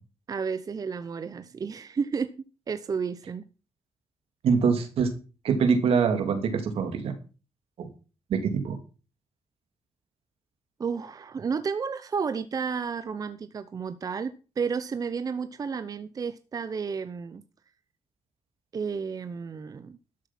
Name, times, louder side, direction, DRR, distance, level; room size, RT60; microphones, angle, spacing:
voice 1, 0.3-3.5 10.8-17.4 18.7-20.0, right 5 dB, 40° right, 0.7 m, -32 dB
voice 2, 4.4-5.1 5.4-7.1 7.8-7.9 8.3-8.8, right 6 dB, 80° right, 2.5 m, -24 dB
12.5 x 7.6 x 5.9 m
cardioid pair, 120°, 10 cm